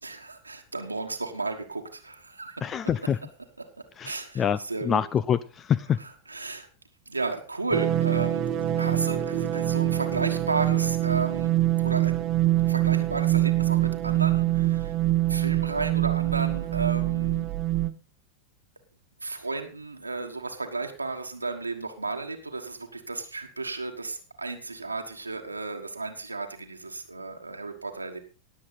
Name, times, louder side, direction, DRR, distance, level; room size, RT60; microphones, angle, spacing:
voice 1, 0.0-2.7 3.6-3.7 4.0-5.0 6.0-6.7 7.1-12.3 12.6-15.0 15.3-17.5 19.2-28.2, right 3 dB, 80° right, 3 dB, 1.4 m, -33 dB
voice 2, 2.6-3.2 4.0-4.6 4.8-6.0, left 8 dB, 25° left, 18 dB, 0.5 m, -26 dB
sound 1, 7.7-17.9, right 14 dB, 35° right, 1.0 m, -24 dB
18.0 x 7.5 x 4.0 m, 0.36 s
figure-of-eight pair, 90°, 0 cm